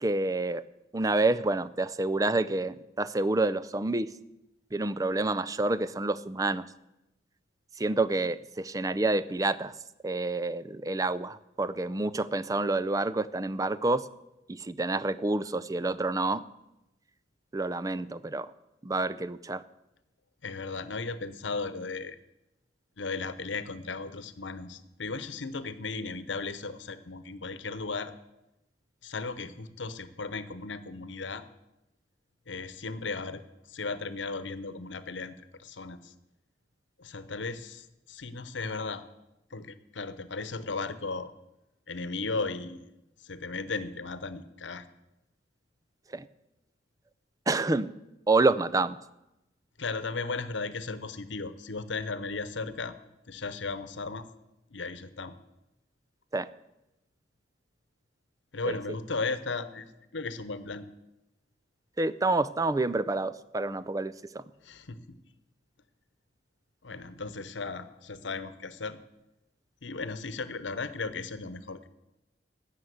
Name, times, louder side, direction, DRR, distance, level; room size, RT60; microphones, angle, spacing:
voice 1, 0.0-0.6 0.9-4.1 4.7-6.7 7.8-9.7 10.0-14.1 14.5-16.4 17.5-18.5 18.8-19.6 46.1-46.3 47.5-47.9 48.3-49.0 56.3-56.5 58.7-58.8 62.0-64.4, right 2 dB, 20° right, 16 dB, 0.4 m, -28 dB
voice 2, 20.4-22.2 23.0-28.1 29.0-31.4 32.5-33.4 33.7-36.1 37.0-39.0 39.5-41.3 41.9-42.9 43.2-44.8 49.8-52.9 53.3-54.3 54.7-55.3 58.5-60.8 64.6-65.2 66.8-69.0 69.8-71.9, left 3 dB, 90° left, 13 dB, 0.9 m, -36 dB
13.0 x 7.4 x 9.2 m, 0.93 s
head